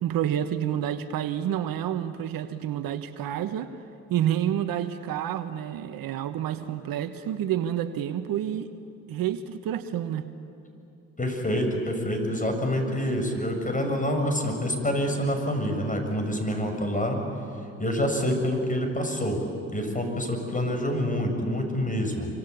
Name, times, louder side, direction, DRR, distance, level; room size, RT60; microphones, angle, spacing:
voice 1, 0.0-3.7 4.1-8.7 9.1-10.3, right 10 dB, 65° right, 10 dB, 1.4 m, -29 dB
voice 2, 11.2-17.2 17.8-19.4 19.7-22.3, equal, 20° left, 4 dB, 7.7 m, -27 dB
27.0 x 25.5 x 8.6 m, 2.8 s
hypercardioid pair, 50°, 38 cm